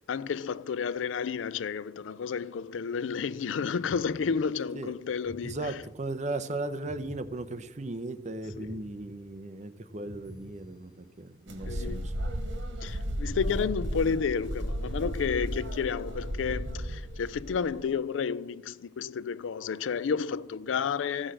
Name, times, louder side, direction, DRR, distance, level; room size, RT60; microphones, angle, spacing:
voice 1, 0.1-5.8 8.6-8.9 11.6-12.1 12.8-21.3, left 6 dB, 90° left, 0.4 m, -31 dB
sound 1, 3.8-4.7 5.2-6.3 6.8-8.0 8.4-9.6 10.0-11.2 11.6-12.7 13.2-14.4 14.8-16.0 16.4-17.3, right 1 dB, 50° left, 3.1 m, -48 dB
voice 2, 5.5-12.1, right 2 dB, 40° right, 0.7 m, -37 dB
sound 2, 11.5-17.8, equal, 75° right, 1.6 m, -34 dB
14.5 x 6.2 x 6.3 m
head